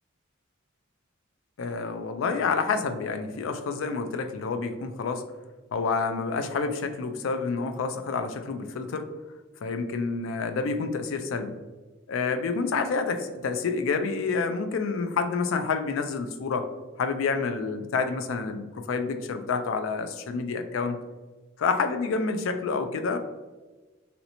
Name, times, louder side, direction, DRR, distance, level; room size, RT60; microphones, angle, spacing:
voice 1, 1.6-5.2 5.7-9.1 9.6-11.6 12.1-16.7 17.0-21.0 21.6-23.2, left 4 dB, 70° left, 8 dB, 0.3 m, -28 dB
3.1 x 2.7 x 2.8 m, 1.3 s
head